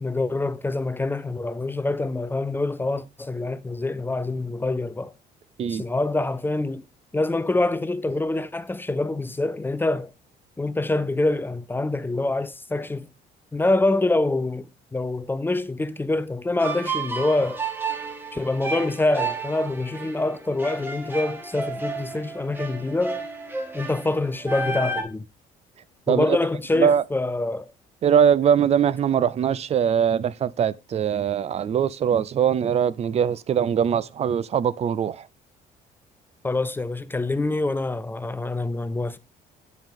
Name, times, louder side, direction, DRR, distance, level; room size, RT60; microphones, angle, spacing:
voice 1, 0.0-5.1 5.7-6.8 7.1-10.1 10.6-13.1 13.5-17.6 18.3-23.2 23.7-25.2 26.1-27.7 36.4-39.2, left 2 dB, 10° left, 0.5 m, -25 dB
sound 1, 16.6-25.0, right 4 dB, 10° right, 1.3 m, -32 dB
voice 2, 28.0-35.3, right 8 dB, 40° right, 0.5 m, -22 dB
9.2 x 5.1 x 3.6 m
cardioid pair, 110°, 17 cm